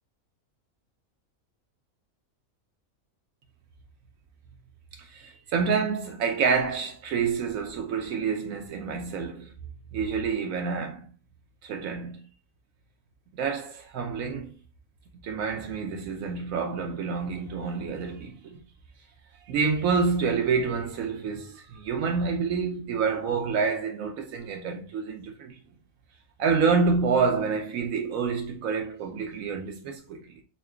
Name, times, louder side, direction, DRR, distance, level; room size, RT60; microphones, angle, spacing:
voice 1, 5.0-9.5 9.9-11.1 11.6-12.2 13.3-14.6 15.2-18.6 19.5-25.6 26.4-30.4, right 5 dB, 80° right, 1.0 m, -28 dB
5.4 x 2.2 x 2.3 m
omnidirectional pair, 1.4 m